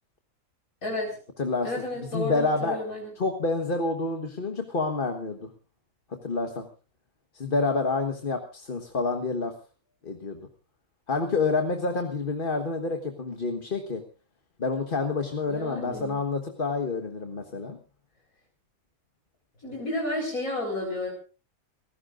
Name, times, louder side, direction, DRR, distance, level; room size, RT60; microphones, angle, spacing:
voice 1, 0.8-1.2 1.6-3.1 15.5-16.2 19.6-21.1, left 2 dB, 75° left, -1 dB, 4.9 m, -31 dB
voice 2, 1.4-1.7 2.0-2.8 3.2-5.5 6.1-6.7 7.3-9.5 10.0-10.5 11.1-14.0 14.6-17.8, left 3 dB, 40° left, 5 dB, 1.5 m, -28 dB
29.0 x 15.5 x 2.6 m, 0.34 s
omnidirectional pair, 1.5 m